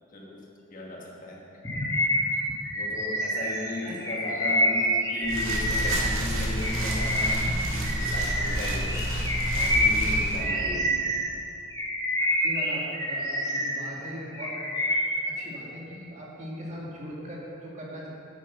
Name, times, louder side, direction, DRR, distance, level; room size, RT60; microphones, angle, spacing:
voice 1, 0.1-0.4 0.7-1.6 2.7-9.0 9.5-11.0, left 2 dB, 40° left, -2 dB, 1.5 m, -36 dB
Bird vocalization bird call bird song, 1.6-6.2 6.6-11.3 11.7-13.8 14.1-15.2, equal, 15° left, 1.9 m, -27 dB
sound 1, 5.2-10.4, right 1 dB, 80° right, 2.0 m, -29 dB
voice 2, 10.3-10.8 12.4-14.5 15.2-18.1, equal, 35° right, -4 dB, 2.1 m, -39 dB
9.1 x 8.5 x 5.8 m, 2.7 s
head